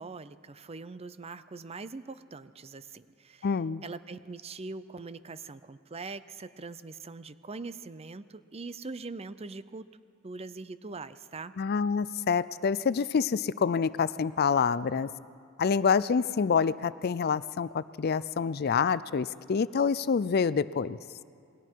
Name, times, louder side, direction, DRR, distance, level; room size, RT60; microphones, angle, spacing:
voice 1, 0.0-3.5 3.8-9.9 10.2-11.6, right 3 dB, 30° right, 14 dB, 0.6 m, -42 dB
voice 2, 3.4-3.8 11.6-15.1 15.6-21.0, left 6 dB, 50° left, 17 dB, 0.4 m, -27 dB
28.5 x 21.0 x 4.6 m, 2.4 s
head